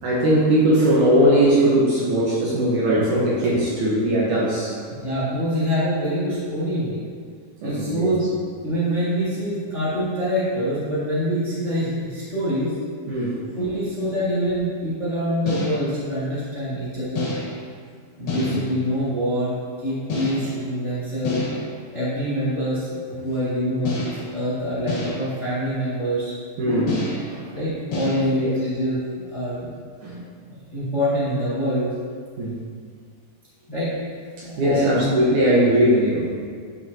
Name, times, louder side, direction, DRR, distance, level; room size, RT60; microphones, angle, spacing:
voice 1, 0.0-4.8 7.6-8.2 13.1-13.6 18.3-18.6 26.6-27.5 28.3-28.5 30.0-30.3 32.4-32.6 34.4-36.3, right 1 dB, 65° right, -5 dB, 2.3 m, -20 dB
voice 2, 5.0-7.0 7.6-8.2 8.6-12.7 13.5-17.3 18.2-19.5 19.8-21.4 21.9-26.3 27.5-29.7 30.7-31.9 33.7-33.9 34.4-35.2, equal, 30° left, -11 dB, 1.4 m, -25 dB
sound 1, 15.5-16.0 17.2-17.7 18.3-18.8 20.1-20.7 21.3-21.8 23.9-24.4 24.9-25.4 26.9-27.4 27.9-28.3, left 3 dB, 75° left, 3.5 m, -29 dB
11.0 x 6.4 x 2.8 m, 2.1 s
omnidirectional pair, 4.4 m